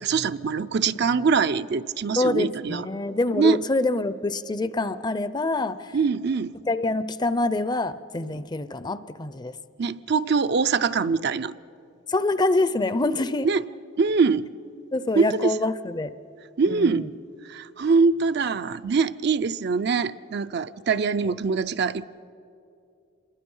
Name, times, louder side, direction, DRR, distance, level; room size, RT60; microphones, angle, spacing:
voice 1, 0.0-2.8 3.3-3.6 5.9-6.5 9.8-11.5 13.4-13.6 14.0-14.5 15.2-15.5 16.6-17.1 17.5-22.1, right 5 dB, 60° right, 12 dB, 0.5 m, -23 dB
voice 2, 2.2-6.0 6.7-9.6 12.1-13.5 14.9-16.1 16.7-17.1 21.3-21.4, left 2 dB, 20° left, 15 dB, 0.5 m, -26 dB
26.5 x 21.5 x 5.5 m, 2.6 s
head